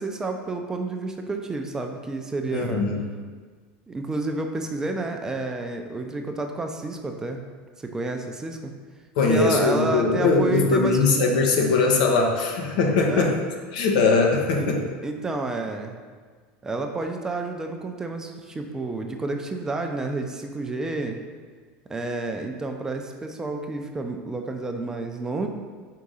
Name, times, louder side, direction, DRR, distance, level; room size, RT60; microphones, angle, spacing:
voice 1, 0.0-2.8 3.9-7.4 7.8-8.7 9.3-11.0 13.1-13.3 14.5-14.7 15.0-16.0 16.6-21.2 21.9-25.5, right 2 dB, 15° right, 4 dB, 0.4 m, -30 dB
voice 2, 2.5-3.0 9.2-13.4 13.7-14.8, left 3 dB, 75° left, 2 dB, 1.0 m, -21 dB
4.7 x 3.7 x 5.5 m, 1.5 s
supercardioid pair, 140°, 4 cm